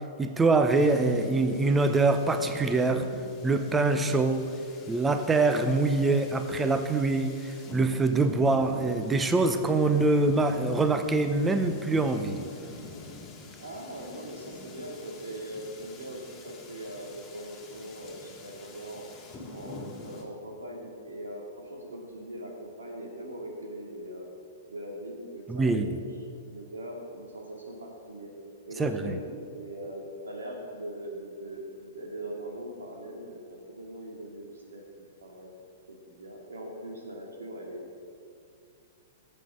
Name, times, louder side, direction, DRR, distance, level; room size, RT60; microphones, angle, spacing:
voice 1, 0.2-3.1 3.4-4.4 4.9-12.5 25.5-25.9 28.8-29.1, right 3 dB, 15° right, 9 dB, 0.8 m, -24 dB
sound 1, 0.7-20.2, left 2 dB, 20° left, 2.0 m, -45 dB
voice 2, 13.6-19.1 19.5-24.3 24.7-28.3 28.7-35.5 35.9-37.9, right 1 dB, 80° right, 0 dB, 2.5 m, -41 dB
17.0 x 7.8 x 3.8 m, 2.3 s
figure-of-eight pair, 110°, 0 cm